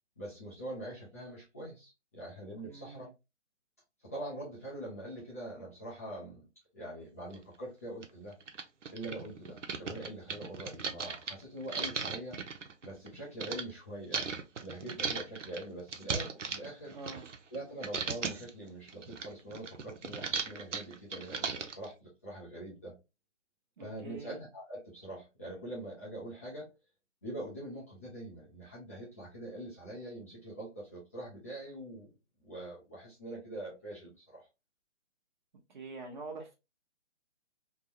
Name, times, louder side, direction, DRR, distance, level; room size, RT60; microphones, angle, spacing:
voice 1, 0.2-3.1 4.0-6.5 6.7-8.3 8.9-12.4 12.8-16.9 17.5-23.0 23.8-26.7 27.2-32.1 32.4-34.5, right 1 dB, 10° left, 0.5 m, -44 dB
voice 2, 2.6-3.1 16.9-17.3 23.8-24.4 35.7-36.5, right 3 dB, 40° right, 1.0 m, -45 dB
sound 1, 7.3-7.4 8.0-8.1 8.4-13.6 14.1-17.6 17.8-18.5 18.9-21.9, right 5 dB, 80° right, 0.7 m, -37 dB
3.5 x 2.2 x 2.8 m
figure-of-eight pair, 145°, 36 cm